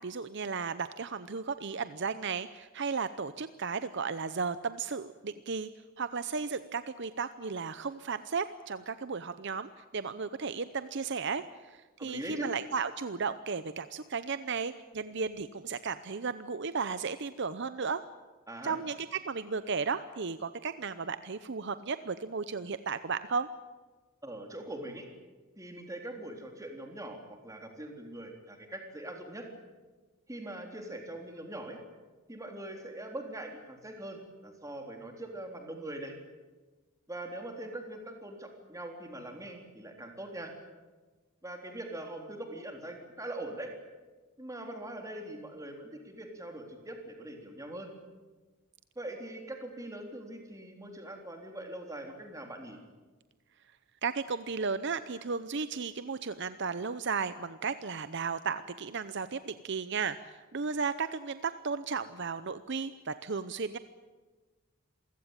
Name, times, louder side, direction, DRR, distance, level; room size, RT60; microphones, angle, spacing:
voice 1, 0.0-5.7 6.0-18.0 18.6-23.5 54.0-63.8, right 5 dB, 55° right, 13 dB, 0.7 m, -34 dB
voice 2, 12.0-12.5 18.5-18.8 24.2-25.1 25.6-29.5 30.3-31.8 32.3-36.1 37.1-40.5 41.4-43.7 44.4-47.9 49.0-52.8, right 1 dB, 15° right, 3 dB, 3.6 m, -42 dB
27.5 x 16.0 x 9.0 m, 1.3 s
head